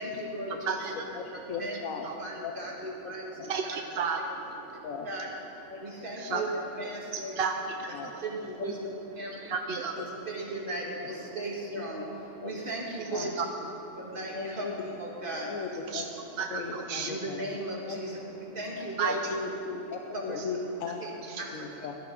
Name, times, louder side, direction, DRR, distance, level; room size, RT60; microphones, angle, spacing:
voice 1, 0.0-0.8 1.6-1.8 2.2-3.3 5.0-5.3 5.8-7.3 8.2-8.8 9.2-9.5 10.0-12.0 12.4-13.3 14.0-15.5 17.0-18.2 18.5-19.2 20.3-20.4 21.0-21.1 21.4-21.5 21.8-21.9, right 1 dB, 40° right, -3 dB, 2.0 m, -36 dB
voice 2, 0.6-1.0 2.0-2.1 3.4-4.9 5.7-6.4 7.1-8.2 9.2-10.0 12.3-12.7 13.0-13.5 13.8-14.2 15.9-16.0 16.4-17.2 18.5-18.6 19.0-19.3 20.4-20.5 21.3-21.4, right 5 dB, 60° right, 4 dB, 0.7 m, -34 dB
voice 3, 1.1-2.1 2.4-2.5 3.4-3.5 4.8-5.1 5.7-5.8 6.3-6.4 6.8-6.9 7.9-8.1 8.6-8.8 10.0-10.1 11.7-12.1 12.4-12.6 13.1-13.3 14.3-14.7 15.2-16.1 16.5-17.5 17.8-18.0 19.3-21.0 21.3-22.0, left 5 dB, 85° left, 3 dB, 1.2 m, -37 dB
17.0 x 12.0 x 3.8 m, 2.9 s
omnidirectional pair, 1.4 m